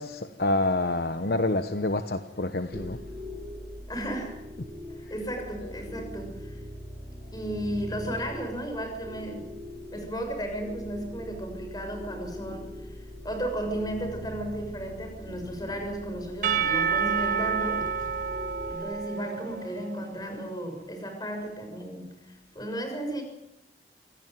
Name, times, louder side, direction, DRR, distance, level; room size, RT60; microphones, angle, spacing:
voice 1, 0.0-3.0, left 2 dB, 60° left, 9 dB, 1.0 m, -27 dB
sound 1, 2.7-18.8, left 1 dB, 30° right, 5.3 m, -41 dB
voice 2, 3.9-4.4 4.9-6.6 7.3-9.5 9.9-17.8 18.7-23.2, right 1 dB, 20° left, 5 dB, 6.7 m, -34 dB
Percussion / Church bell, 16.4-20.4, right 7 dB, 45° right, 1.9 m, -29 dB
26.5 x 16.5 x 9.3 m, 0.88 s
head